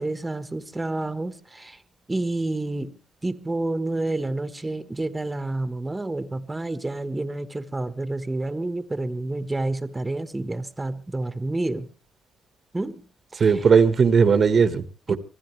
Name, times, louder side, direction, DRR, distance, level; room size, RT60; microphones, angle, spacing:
voice 1, 0.0-1.8 2.1-11.9 12.7-13.0 13.3-13.6 15.1-15.2, right 2 dB, 15° right, 1.3 m, -29 dB
voice 2, 13.4-15.2, right 5 dB, 50° right, 1.4 m, -18 dB
24.5 x 15.0 x 3.3 m
cardioid pair, 85°, 0 cm